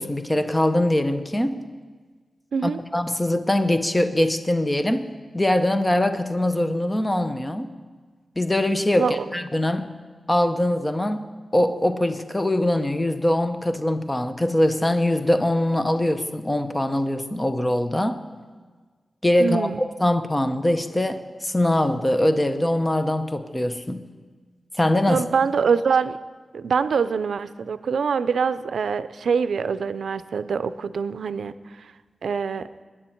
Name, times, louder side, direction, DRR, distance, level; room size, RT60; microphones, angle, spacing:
voice 1, 0.0-1.7 2.6-5.1 5.3-7.7 8.4-9.9 10.3-18.2 19.2-24.0 24.8-25.2, left 1 dB, 15° left, 9 dB, 0.7 m, -22 dB
voice 2, 19.4-19.8 25.1-26.2 26.5-31.9 32.2-32.7, right 6 dB, 85° right, 13 dB, 0.4 m, -24 dB
22.0 x 9.9 x 4.5 m, 1.5 s
wide cardioid pair, 145°, 0 cm